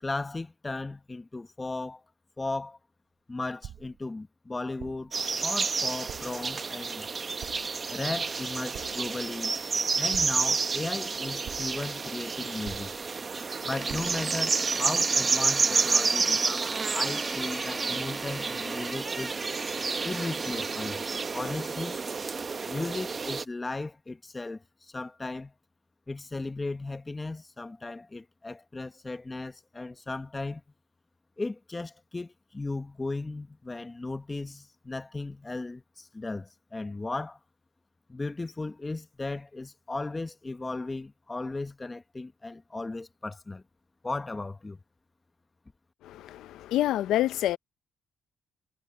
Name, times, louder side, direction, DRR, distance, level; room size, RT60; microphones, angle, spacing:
voice 1, 0.0-2.0 2.4-2.8 3.3-5.2 5.4-7.1 7.9-9.5 9.9-12.9 13.6-19.3 20.0-21.0 21.3-22.0 22.7-25.5 26.1-30.6 31.4-37.4 38.1-43.6 44.0-44.8, left 3 dB, 20° left, 1.2 m, -36 dB
sound 1, 3.6-4.1 4.8-5.2 6.1-6.5 7.4-7.9 8.7-9.2 10.1-10.7 11.4-11.9 12.6-13.2 13.9-14.3, right 10 dB, 70° right, 0.9 m, -45 dB
sound 2, 5.1-23.4, right 4 dB, 35° right, 1.1 m, -30 dB
Door, 13.7-22.2, right 2 dB, 20° right, 1.5 m, -40 dB
voice 2, 46.0-47.6, left 13 dB, 85° left, 0.6 m, -27 dB
cardioid pair, 90°, 0 cm